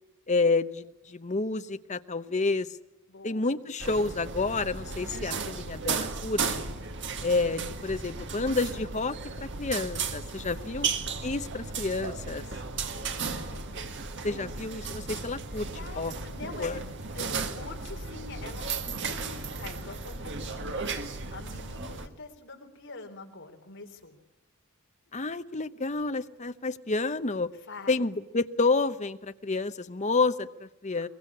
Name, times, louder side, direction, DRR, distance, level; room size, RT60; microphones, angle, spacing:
voice 1, 0.3-2.8 3.2-6.6 7.2-10.9 11.2-12.4 14.2-15.7 15.9-16.1 16.6-16.8 25.1-27.5 27.9-31.1, left 3 dB, 30° left, 11 dB, 0.9 m, -29 dB
voice 2, 3.1-3.6 7.0-7.3 10.6-11.0 12.9-13.8 14.2-14.6 15.5-16.8 17.1-24.2 27.7-28.0, left 3 dB, 55° left, 4 dB, 3.7 m, -46 dB
sound 1, 3.8-22.1, right 4 dB, 55° right, 1.8 m, -35 dB
23.0 x 22.0 x 8.6 m, 0.89 s
head